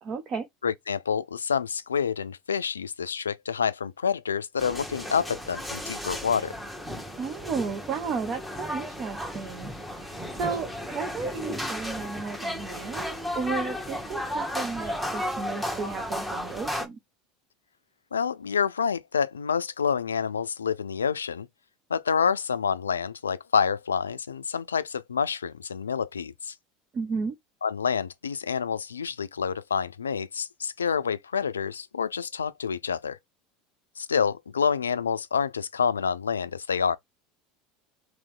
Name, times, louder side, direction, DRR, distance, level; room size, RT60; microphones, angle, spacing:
voice 1, 0.0-0.5 7.2-17.0 26.9-27.3, right 5 dB, 45° right, 0.9 m, -33 dB
voice 2, 0.6-6.6 18.1-21.5 21.9-26.5 27.6-33.2 34.0-37.0, left 6 dB, 90° left, 0.3 m, -28 dB
sound 1, 4.6-16.9, equal, 5° right, 1.2 m, -34 dB
3.3 x 3.1 x 3.4 m
hypercardioid pair, 80°, 0 cm